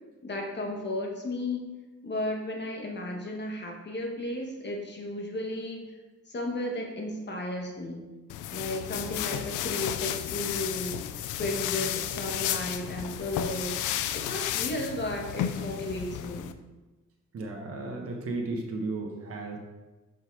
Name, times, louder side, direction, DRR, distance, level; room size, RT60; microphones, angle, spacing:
voice 1, 0.2-1.6 2.0-5.8 6.3-8.0 8.5-10.9 11.4-13.8 14.1-16.5, left 1 dB, 35° left, 0 dB, 1.7 m, -34 dB
sound 1, 8.3-16.5, left 11 dB, 90° left, 0.5 m, -33 dB
voice 2, 17.3-19.6, right 2 dB, 50° right, 0 dB, 1.4 m, -34 dB
5.8 x 5.4 x 4.7 m, 1.2 s
cardioid pair, 90°, 30 cm